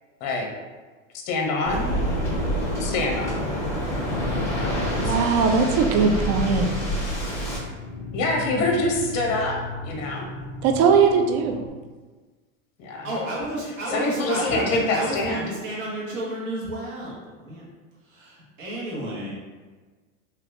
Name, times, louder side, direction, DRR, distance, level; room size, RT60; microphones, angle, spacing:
voice 1, 1.3-2.0 2.8-3.5 4.6-5.3 8.1-9.6 9.9-10.3 12.8-13.1 13.9-15.4, left 2 dB, 45° left, 1 dB, 0.8 m, -26 dB
Waves surf, 1.6-7.6, equal, 5° left, 1.2 m, -27 dB
sound 1, 3.7-11.7, left 3 dB, 30° left, 0.4 m, -36 dB
voice 2, 5.0-6.7 10.6-11.6, right 5 dB, 45° right, 5 dB, 0.5 m, -20 dB
voice 3, 13.0-17.6 18.0-19.3, right 1 dB, 80° right, -5 dB, 1.4 m, -31 dB
3.3 x 2.9 x 2.5 m, 1.3 s
hypercardioid pair, 100°, 39 cm